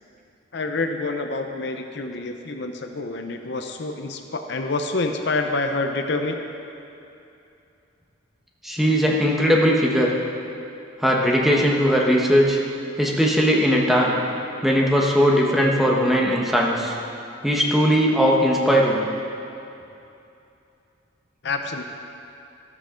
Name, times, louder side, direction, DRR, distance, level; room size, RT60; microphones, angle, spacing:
voice 1, 0.5-6.3 21.4-21.8, left 3 dB, 60° left, 5 dB, 0.7 m, -27 dB
voice 2, 8.6-10.1 11.0-12.6 13.0-14.2 14.6-16.9 17.4-19.0, equal, ahead, -3 dB, 1.1 m, -19 dB
13.0 x 13.0 x 3.8 m, 2.7 s
head